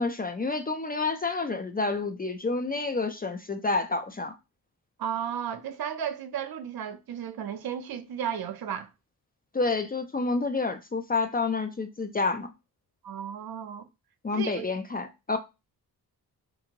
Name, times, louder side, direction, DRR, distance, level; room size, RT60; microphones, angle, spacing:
voice 1, 0.0-4.3 9.5-12.5 14.2-15.4, left 3 dB, 25° left, 0.3 m, -29 dB
voice 2, 5.0-8.9 13.0-13.9 14.3-14.7, right 8 dB, 65° right, 0.5 m, -34 dB
2.6 x 2.5 x 2.8 m
cardioid pair, 70°, 40 cm